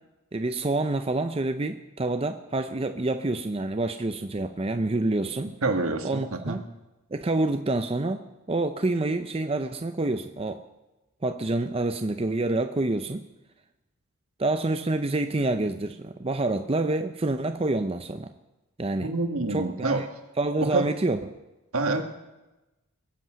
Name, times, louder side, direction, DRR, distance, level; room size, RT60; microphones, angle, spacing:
voice 1, 0.3-5.6 6.0-6.6 7.1-10.6 11.2-13.2 14.4-18.3 18.8-19.1 19.5-20.0 20.4-21.2, right 2 dB, 25° right, 7 dB, 0.5 m, -27 dB
voice 2, 5.6-6.6 19.0-20.0 20.6-20.9 21.7-22.0, right 3 dB, 75° right, 5 dB, 1.6 m, -27 dB
22.0 x 8.4 x 6.3 m, 1.0 s
head